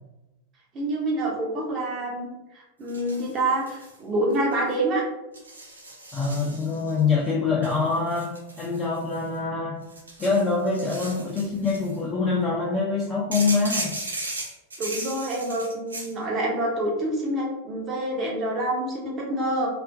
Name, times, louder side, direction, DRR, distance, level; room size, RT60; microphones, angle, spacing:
voice 1, 0.7-5.0 14.8-19.7, right 1 dB, 30° right, -3 dB, 0.8 m, -27 dB
sound 1, 2.9-4.0 4.3-4.7 5.3-7.0 7.6-9.4 9.8-12.0 13.3-16.1, right 2 dB, 75° right, 0.9 m, -36 dB
voice 2, 6.1-9.8 10.2-13.9, left 4 dB, 20° left, -5 dB, 0.5 m, -25 dB
2.4 x 2.1 x 2.6 m, 0.99 s
figure-of-eight pair, 90°, 0 cm